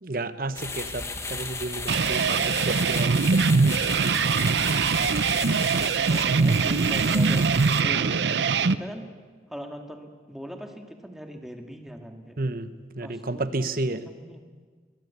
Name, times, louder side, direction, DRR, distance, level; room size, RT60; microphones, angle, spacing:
voice 1, 0.0-3.8 12.4-14.0, right 2 dB, 50° right, 12 dB, 1.1 m, -32 dB
sound 1, 0.6-7.8, left 3 dB, 15° left, 1.4 m, -35 dB
sound 2, 1.9-8.8, right 5 dB, 75° right, 0.7 m, -22 dB
voice 2, 4.8-7.5 7.8-9.1 9.5-12.4 13.0-14.4, equal, ahead, 4 dB, 1.9 m, -41 dB
23.0 x 21.5 x 8.3 m, 1.5 s
head